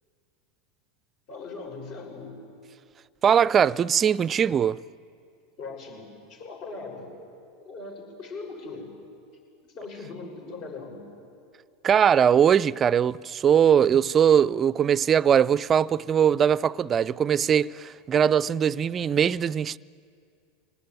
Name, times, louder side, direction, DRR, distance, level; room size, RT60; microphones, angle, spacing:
voice 1, 1.3-2.4 5.6-7.1 7.6-8.9 9.6-11.0, left 3 dB, 55° left, 6.8 m, -39 dB
voice 2, 3.2-4.8 11.8-19.8, right 8 dB, 30° right, 0.5 m, -21 dB
25.0 x 18.5 x 9.5 m
hypercardioid pair, 90°, 0 cm